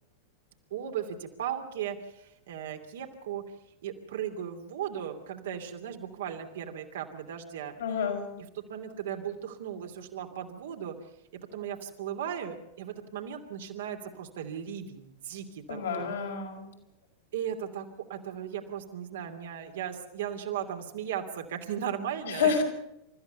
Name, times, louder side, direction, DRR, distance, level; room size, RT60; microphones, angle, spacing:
voice 1, 0.7-3.4 3.8-7.8 8.5-11.0 11.5-16.1 17.3-22.5, right 9 dB, 60° right, 4 dB, 2.8 m, -37 dB
voice 2, 7.8-8.3 15.7-16.6 22.3-22.6, left 6 dB, 65° left, 1 dB, 5.6 m, -28 dB
28.5 x 14.0 x 7.0 m, 0.85 s
figure-of-eight pair, 90°, 0 cm